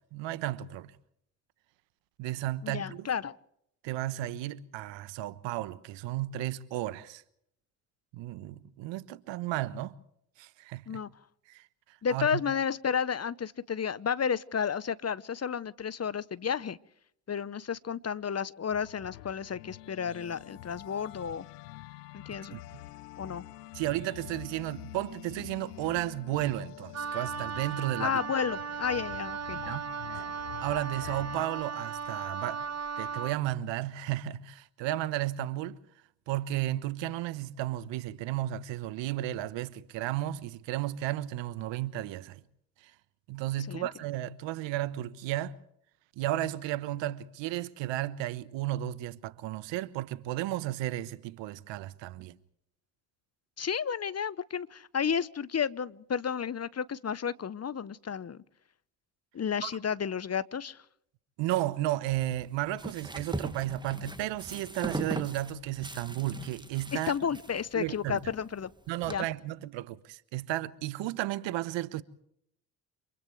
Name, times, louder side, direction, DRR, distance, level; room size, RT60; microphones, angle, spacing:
voice 1, 0.1-0.9 2.2-3.1 3.8-7.2 8.1-9.9 10.4-11.0 11.5-12.4 22.5-22.6 23.7-28.2 29.6-29.9 30.6-32.7 33.0-35.8 36.3-42.4 42.8-42.9 43.3-45.6 46.2-52.4 59.6-59.7 61.4-67.1 67.7-68.2 68.9-72.0, right 14 dB, 70° right, 1.2 m, -33 dB
voice 2, 2.6-3.3 10.9-11.1 12.0-16.8 17.3-21.4 22.1-22.6 23.2-23.5 28.0-29.6 43.7-43.9 53.6-58.4 59.3-60.8 66.9-68.7 69.1-69.3, left 7 dB, 35° left, 1.0 m, -32 dB
sound 1, 18.7-31.5, left 16 dB, 85° left, 0.7 m, -46 dB
Wind instrument woodwind instrument, 26.9-33.4, right 6 dB, 35° right, 1.1 m, -37 dB
sound 2, 62.1-69.2, right 1 dB, 10° right, 1.9 m, -40 dB
29.0 x 26.5 x 3.3 m
hypercardioid pair, 45°, 46 cm